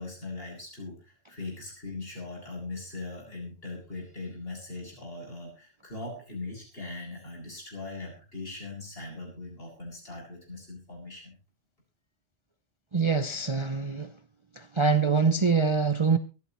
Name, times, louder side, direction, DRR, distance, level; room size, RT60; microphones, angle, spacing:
voice 1, 0.0-11.3, left 3 dB, 55° left, 8.1 m, -40 dB
voice 2, 12.9-14.2 14.5-16.2, right 5 dB, 30° right, 0.7 m, -24 dB
25.0 x 11.0 x 3.1 m
omnidirectional pair, 1.2 m